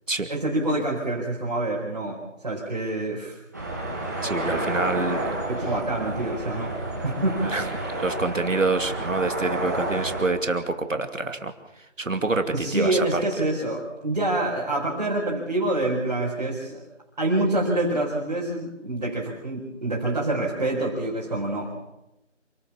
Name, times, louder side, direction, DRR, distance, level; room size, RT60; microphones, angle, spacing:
voice 1, 0.3-3.4 5.5-7.4 12.5-16.8 17.2-21.9, right 2 dB, 35° right, -6 dB, 4.9 m, -26 dB
sound 1, 3.5-10.3, right 1 dB, 15° right, 2.3 m, -30 dB
voice 2, 4.2-5.3 7.5-7.7 8.0-11.5 12.0-13.2, right 3 dB, 85° right, 7 dB, 2.7 m, -26 dB
28.5 x 14.0 x 7.4 m, 0.93 s
figure-of-eight pair, 180°, 37 cm